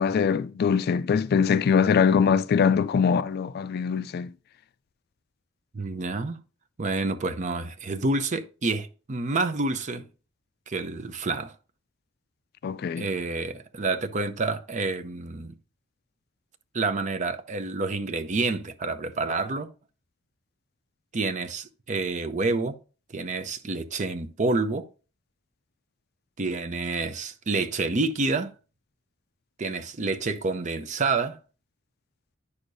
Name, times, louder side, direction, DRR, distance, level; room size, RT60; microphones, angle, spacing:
voice 1, 0.0-4.3 12.6-13.1, left 6 dB, 55° left, 0.3 m, -22 dB
voice 2, 5.7-6.4 6.8-10.1 10.7-11.5 13.0-15.6 16.7-19.7 21.1-22.8 23.1-24.9 26.4-28.5 29.6-31.4, right 3 dB, 40° right, 0.6 m, -28 dB
9.7 x 6.4 x 2.6 m
head